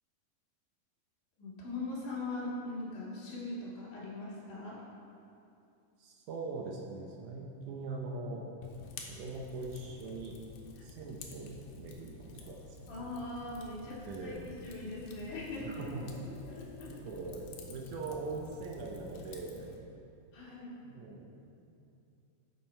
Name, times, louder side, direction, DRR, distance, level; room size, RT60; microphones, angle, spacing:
voice 1, 1.4-4.8 12.9-15.8 16.4-17.0 20.3-20.8, left 2 dB, 60° left, -7 dB, 3.4 m, -41 dB
voice 2, 6.0-8.8 9.2-10.4 10.8-13.1 13.9-14.4 15.6-16.4 17.0-19.7 20.8-21.3, right 3 dB, 75° right, -1 dB, 1.8 m, -42 dB
Fire, 8.6-19.8, left 4 dB, 90° left, 2.6 m, -50 dB
9.6 x 6.2 x 4.3 m, 2.6 s
omnidirectional pair, 4.3 m